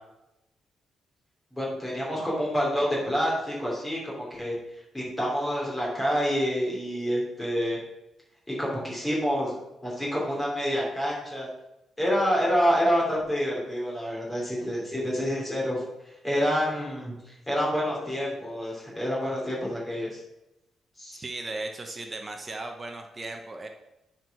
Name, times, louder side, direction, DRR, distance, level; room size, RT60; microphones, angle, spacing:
voice 1, 1.5-4.5 4.9-7.8 8.5-9.6 9.8-11.5 12.0-15.8 16.2-17.2 17.5-20.2 21.0-21.2, equal, 10° left, -4 dB, 2.7 m, -27 dB
voice 2, 21.2-23.7, right 2 dB, 20° right, 4 dB, 0.7 m, -36 dB
9.1 x 4.6 x 5.8 m, 0.93 s
cardioid pair, 155°, 0 cm